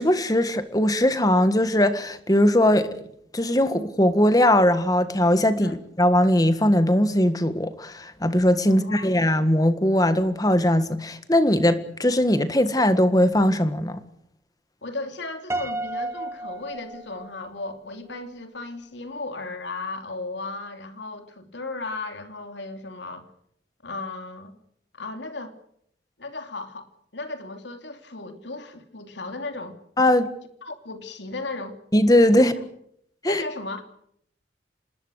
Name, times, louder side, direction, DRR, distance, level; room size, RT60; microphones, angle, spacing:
voice 1, 0.0-2.9 3.3-14.0 30.0-30.3 31.9-32.5 33.2-33.4, left 1 dB, 20° left, 1.7 m, -20 dB
voice 2, 8.7-9.2 14.8-23.3 23.8-24.6 24.9-25.5 26.2-29.8 30.6-31.8 32.4-32.6 33.3-33.8, left 3 dB, 80° left, 3.0 m, -35 dB
Piano, 15.5-17.7, right 2 dB, 15° right, 1.1 m, -32 dB
27.0 x 20.5 x 6.5 m
head